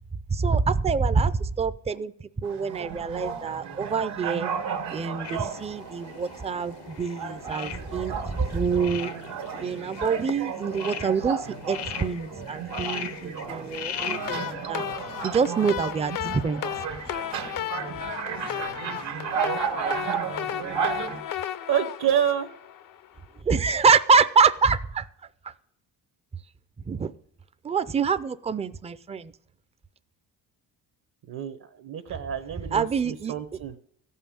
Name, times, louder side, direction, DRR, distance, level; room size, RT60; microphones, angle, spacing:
voice 1, 0.3-2.1 2.4-4.5 4.9-9.1 9.6-11.4 11.7-14.8 15.2-16.6 20.8-21.0 23.5-25.1 26.9-27.1 27.6-29.3 32.7-33.3, right 5 dB, 15° right, 14 dB, 0.4 m, -25 dB
sound 1, 2.4-21.2, right 7 dB, 85° right, 1.7 m, -34 dB
sound 2, 5.2-14.5, left 9 dB, 75° left, 0.9 m, -39 dB
sound 3, 14.0-23.1, left 11 dB, 50° left, 0.6 m, -34 dB
voice 2, 21.7-22.5 31.3-33.7, right 9 dB, 60° right, 10 dB, 0.9 m, -28 dB
14.5 x 5.6 x 8.7 m, 0.69 s
cardioid pair, 100°, 41 cm